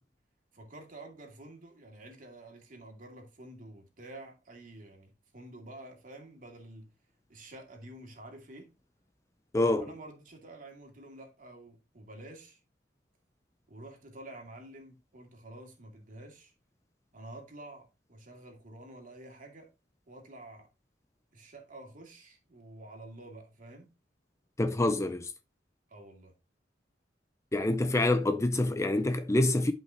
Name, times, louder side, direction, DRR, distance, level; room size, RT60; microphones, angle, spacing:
voice 1, 0.5-6.9 7.3-8.7 9.8-12.6 13.7-16.5 17.1-19.7 20.1-20.7 21.3-23.9 25.9-26.3, right 1 dB, 45° right, 2.4 m, -49 dB
voice 2, 9.5-9.9 24.6-25.3 27.5-29.7, left 2 dB, 15° left, 0.4 m, -26 dB
11.0 x 5.4 x 2.8 m
head